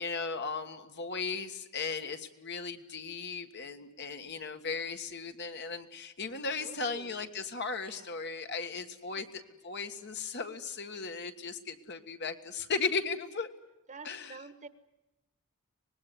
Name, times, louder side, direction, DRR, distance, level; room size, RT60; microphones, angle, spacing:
voice 1, 0.0-9.3 9.6-13.5 14.0-14.4, left 4 dB, 50° left, 7 dB, 1.7 m, -36 dB
voice 2, 6.6-7.3 7.8-8.1 9.1-9.2 13.9-14.7, right 3 dB, 35° right, 12 dB, 1.3 m, -49 dB
25.0 x 20.0 x 9.4 m, 1.0 s
head